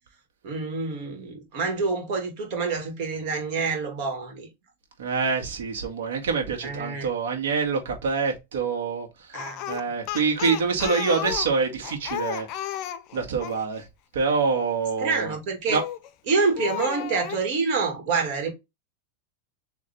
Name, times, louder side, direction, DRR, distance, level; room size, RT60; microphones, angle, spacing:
voice 1, 0.4-4.5 6.6-7.1 9.3-9.6 15.0-15.8 16.3-18.5, right 4 dB, 55° right, 2.1 m, -27 dB
voice 2, 5.0-9.4 9.7-12.7 13.1-13.8 14.1-15.3 15.7-15.8, right 5 dB, 80° right, 1.8 m, -26 dB
Speech, 9.3-13.6 15.7-16.1 16.6-17.4, left 12 dB, 50° left, 0.5 m, -33 dB
4.1 x 3.2 x 3.4 m
hypercardioid pair, 110°, 0 cm